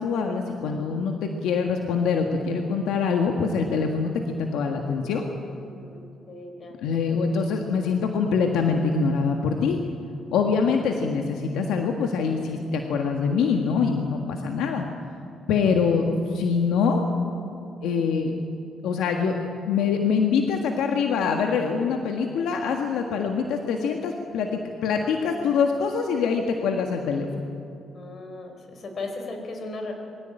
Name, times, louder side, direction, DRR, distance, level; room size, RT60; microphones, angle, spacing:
voice 1, 0.0-5.2 6.8-9.8 10.3-14.8 15.5-17.1 17.8-18.3 18.8-27.3, left 5 dB, 85° left, 3 dB, 1.7 m, -24 dB
voice 2, 5.4-6.8 15.6-15.8 27.9-29.9, left 2 dB, 50° left, 4 dB, 4.7 m, -37 dB
22.0 x 16.5 x 9.0 m, 2.7 s
cardioid pair, 90°, 0 cm